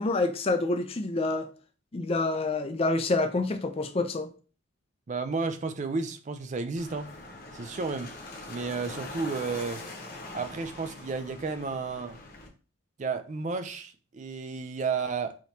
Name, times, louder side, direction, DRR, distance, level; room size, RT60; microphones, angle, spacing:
voice 1, 0.0-1.5 1.9-4.3, left 2 dB, 30° left, 0.4 m, -27 dB
voice 2, 5.1-7.1 7.5-8.1 8.5-9.8 10.3-12.2 13.0-15.4, right 4 dB, 35° right, 0.4 m, -32 dB
sound 1, 6.8-12.5, left 2 dB, 45° left, 1.0 m, -43 dB
5.0 x 3.0 x 2.7 m
head